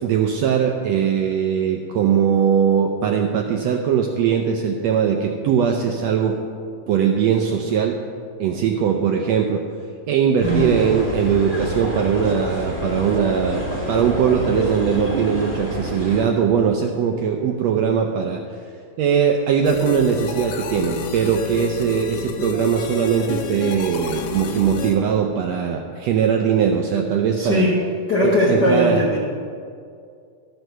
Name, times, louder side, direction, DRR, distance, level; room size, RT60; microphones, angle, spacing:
voice 1, 0.0-6.4 6.9-8.0 8.4-9.6 10.1-18.4 19.0-27.6 28.2-29.0, right 7 dB, 80° right, 2 dB, 1.5 m, -20 dB
voice 2, 10.4-10.8 27.4-27.7 28.1-29.2, left 1 dB, 65° left, -4 dB, 1.0 m, -19 dB
sound 1, 10.4-16.2, equal, 5° left, 1.6 m, -27 dB
sound 2, 19.6-25.0, left 7 dB, 85° left, 2.3 m, -30 dB
13.0 x 6.3 x 6.6 m, 2.3 s
omnidirectional pair, 3.6 m